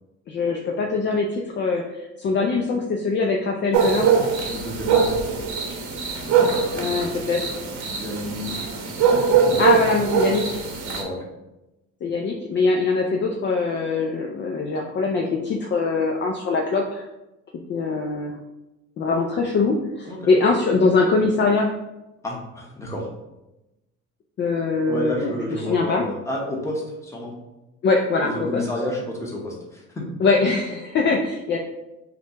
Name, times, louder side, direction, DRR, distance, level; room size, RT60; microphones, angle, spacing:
voice 1, 0.3-4.1 6.8-7.6 9.6-10.6 12.0-17.0 17.7-18.4 19.0-21.7 24.4-25.3 25.7-26.0 27.8-28.6 30.2-31.6, left 4 dB, 40° left, 1 dB, 0.4 m, -22 dB
sound 1, 3.7-11.0, right 6 dB, 70° right, 0.9 m, -22 dB
voice 2, 4.4-5.3 6.2-7.2 7.9-8.7 9.4-9.6 10.8-11.2 20.1-20.3 22.2-23.1 24.9-27.4 28.2-30.1, left 1 dB, 10° left, -2 dB, 0.9 m, -31 dB
5.8 x 2.3 x 2.9 m, 0.96 s
cardioid pair, 135°, 31 cm